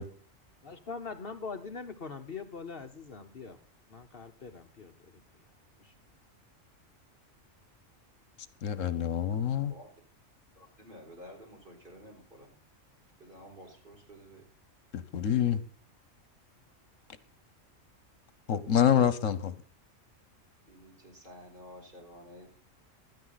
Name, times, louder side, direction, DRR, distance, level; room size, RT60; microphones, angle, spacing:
voice 1, 0.6-3.6 3.9-5.1 5.8-5.9, left 5 dB, 50° left, 1.1 m, -42 dB
voice 2, 8.6-9.7 14.9-15.6 18.5-19.6, left 9 dB, 75° left, 1.3 m, -26 dB
voice 3, 10.6-12.5 13.2-14.5 20.7-22.5, equal, 40° right, 4.6 m, -51 dB
16.0 x 12.5 x 4.0 m
omnidirectional pair, 1.3 m